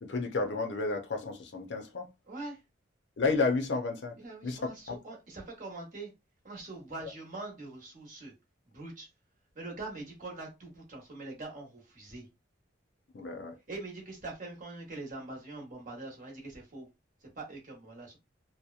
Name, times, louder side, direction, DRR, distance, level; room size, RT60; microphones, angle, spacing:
voice 1, 0.0-2.1 3.2-4.2 4.4-4.6 4.9-5.0 13.1-13.5, left 3 dB, 60° left, 0.5 m, -31 dB
voice 2, 2.3-2.6 4.2-6.1 6.4-8.3 8.7-9.1 9.5-12.3 13.7-16.9 17.2-18.2, right 2 dB, 40° right, 0.9 m, -43 dB
2.7 x 2.1 x 2.4 m
head